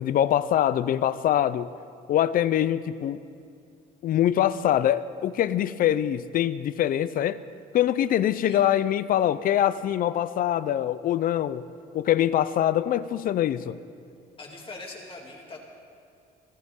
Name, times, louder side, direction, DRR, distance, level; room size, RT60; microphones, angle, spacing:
voice 1, 0.0-1.7 2.1-3.2 4.0-7.4 7.7-11.6 11.9-13.8, left 11 dB, 55° left, 16 dB, 0.5 m, -24 dB
voice 2, 14.4-15.6, left 3 dB, 30° left, -1 dB, 2.9 m, -41 dB
24.5 x 15.0 x 3.7 m, 2.3 s
cardioid pair, 110°, 17 cm